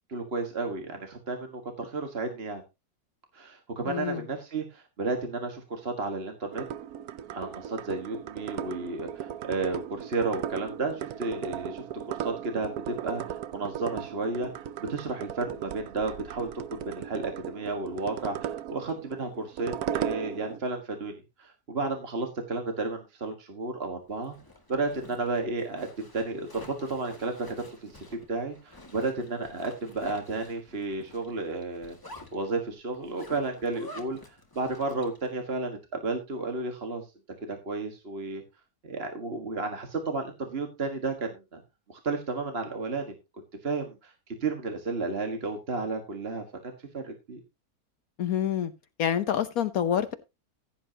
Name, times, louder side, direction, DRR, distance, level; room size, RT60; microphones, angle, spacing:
voice 1, 0.1-2.6 3.3-6.6 7.3-14.5 14.8-24.4 24.7-27.4 27.8-32.0 32.3-37.1 37.4-38.4 38.8-41.6 41.9-47.4, right 3 dB, 40° right, 1.8 m, -33 dB
voice 2, 3.8-4.2 48.2-48.7 49.0-50.1, left 9 dB, 75° left, 1.3 m, -27 dB
sound 1, 6.5-20.6, right 9 dB, 80° right, 1.2 m, -37 dB
Zipper (clothing), 24.1-35.3, left 2 dB, 15° left, 1.8 m, -50 dB
15.5 x 9.0 x 2.8 m
omnidirectional pair, 1.6 m